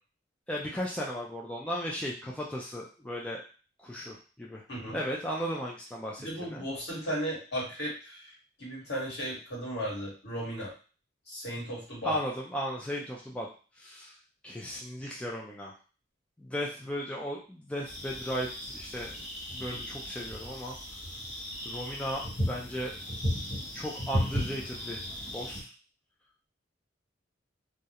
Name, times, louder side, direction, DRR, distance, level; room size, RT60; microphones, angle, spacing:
voice 1, 0.5-3.4 3.8-4.6 4.9-6.6 12.0-13.5 13.8-14.1 14.4-15.7 16.4-20.8 21.7-22.9 23.7-25.0 25.3-25.7, equal, 5° left, -3 dB, 0.3 m, -36 dB
voice 2, 4.7-5.0 6.2-8.3 8.6-10.7 11.3-12.1, equal, 65° left, -5 dB, 1.3 m, -35 dB
sound 1, 17.9-25.6, equal, 45° left, 1.0 m, -35 dB
2.3 x 2.0 x 2.8 m, 0.36 s
head